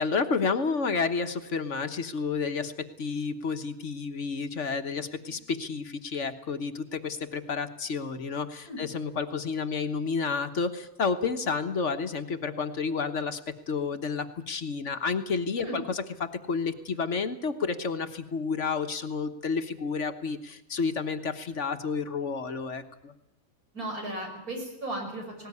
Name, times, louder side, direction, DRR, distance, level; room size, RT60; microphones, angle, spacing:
voice 1, 0.0-13.4 13.7-23.1, left 5 dB, 55° left, 8 dB, 1.5 m, -30 dB
voice 2, 23.7-25.5, right 1 dB, 85° right, 2 dB, 6.5 m, -35 dB
19.0 x 18.5 x 9.6 m, 0.85 s
omnidirectional pair, 1.5 m